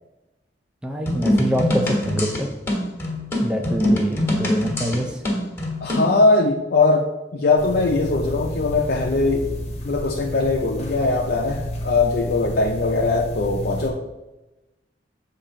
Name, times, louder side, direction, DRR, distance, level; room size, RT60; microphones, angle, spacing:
voice 1, 0.8-2.5 3.4-5.2, equal, 5° right, 3 dB, 0.4 m, -25 dB
sound 1, 1.1-6.1, left 1 dB, 15° left, 1.3 m, -23 dB
voice 2, 5.8-7.1 7.3-9.5 9.8-14.0, left 3 dB, 55° left, 1 dB, 0.5 m, -20 dB
sound 2, 7.6-13.9, equal, 40° left, 1.0 m, -31 dB
7.2 x 2.7 x 5.0 m, 1.0 s
head